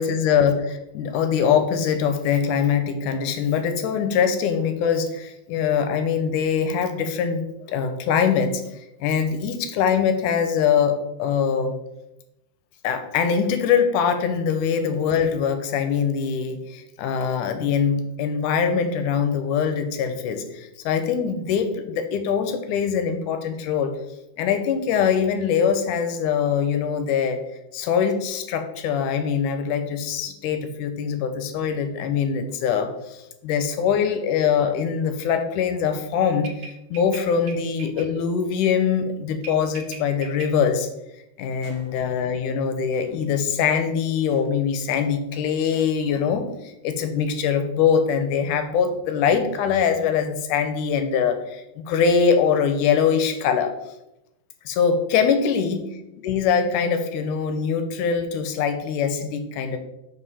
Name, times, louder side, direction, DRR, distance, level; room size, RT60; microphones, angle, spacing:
voice 1, 0.0-7.4 7.7-11.8 12.8-24.0 24.4-27.4 27.7-40.9 41.4-53.7 54.7-55.8 56.2-59.8, left 7 dB, 80° left, 8 dB, 2.1 m, -23 dB
sound 1, 36.4-38.1 39.4-40.5 41.6-42.4 42.9-43.4 44.3-44.6 45.7-45.8, right 4 dB, 80° right, 2.4 m, -42 dB
7.1 x 5.6 x 4.1 m, 0.91 s
omnidirectional pair, 3.8 m